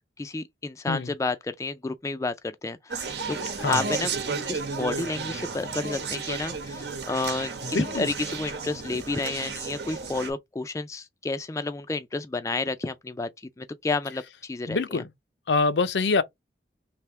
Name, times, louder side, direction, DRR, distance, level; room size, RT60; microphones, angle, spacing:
voice 1, 0.2-13.3 13.6-15.0, left 3 dB, 15° left, 0.3 m, -31 dB
Conversation, 2.9-10.3, right 4 dB, 70° right, 1.0 m, -33 dB
voice 2, 7.6-8.1 14.7-15.0 15.5-16.2, left 4 dB, 80° left, 0.6 m, -25 dB
3.4 x 2.8 x 4.3 m
head